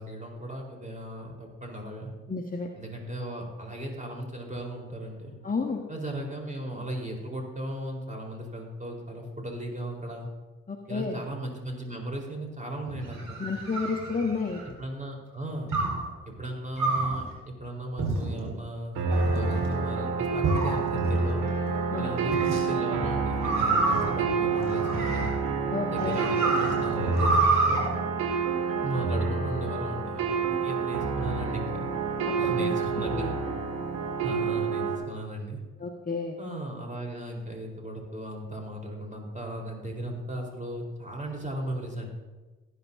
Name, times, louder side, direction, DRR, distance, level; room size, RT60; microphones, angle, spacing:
voice 1, 0.0-2.1 2.8-5.3 5.9-10.3 10.9-13.4 14.8-15.7 16.2-21.4 22.0-25.3 25.9-27.8 28.8-31.9 32.4-33.3 34.2-35.6 36.4-42.1, right 1 dB, 20° right, 0 dB, 4.4 m, -36 dB
voice 2, 2.3-2.7 5.4-5.8 10.7-11.2 13.4-14.7 21.9-22.2 25.7-26.3 32.3-33.6 35.8-36.4, left 4 dB, 20° left, 0 dB, 1.3 m, -32 dB
sound 1, 12.9-14.7 15.7-16.1 16.8-17.2 18.0-18.5 19.1-19.7 20.4-21.2 22.3-22.6 23.4-25.5 26.0-27.8, right 3 dB, 60° right, 4.5 m, -28 dB
sound 2, 19.0-35.0, right 4 dB, 85° right, 2.2 m, -28 dB
19.0 x 10.5 x 2.8 m, 1.3 s
hypercardioid pair, 40°, 38 cm